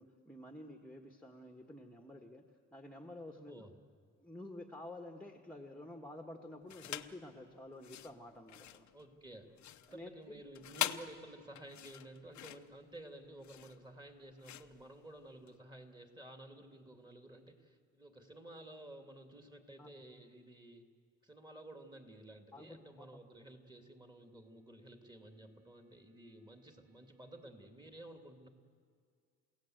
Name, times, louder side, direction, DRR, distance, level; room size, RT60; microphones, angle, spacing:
voice 1, 0.0-2.4 2.7-3.6 4.2-8.9 9.9-10.4 19.8-20.0 22.5-23.2, left 1 dB, 5° left, 4 dB, 1.5 m, -50 dB
voice 2, 3.3-3.7 8.9-9.5 9.9-20.9 21.2-28.5, right 1 dB, 15° right, 4 dB, 2.6 m, -53 dB
sound 1, 6.7-7.2 7.7-15.6, left 12 dB, 65° left, 0.9 m, -44 dB
sound 2, 23.1-27.5, right 9 dB, 85° right, 4.7 m, -74 dB
29.5 x 16.5 x 7.9 m, 2.1 s
cardioid pair, 105°, 31 cm